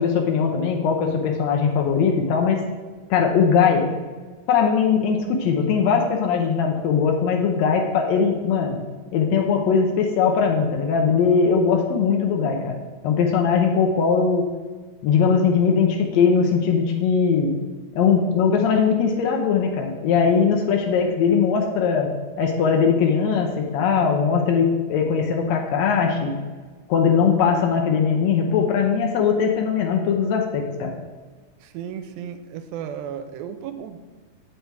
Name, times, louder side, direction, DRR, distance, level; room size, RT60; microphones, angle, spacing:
voice 1, 0.0-2.6 3.1-3.9 4.5-8.8 9.1-12.8 13.0-14.5 15.0-17.5 17.9-22.1 22.4-26.3 26.9-30.9, left 6 dB, 90° left, 1 dB, 1.5 m, -20 dB
voice 2, 31.6-34.0, right 8 dB, 85° right, 8 dB, 2.4 m, -34 dB
8.1 x 5.8 x 4.6 m, 1.4 s
omnidirectional pair, 4.1 m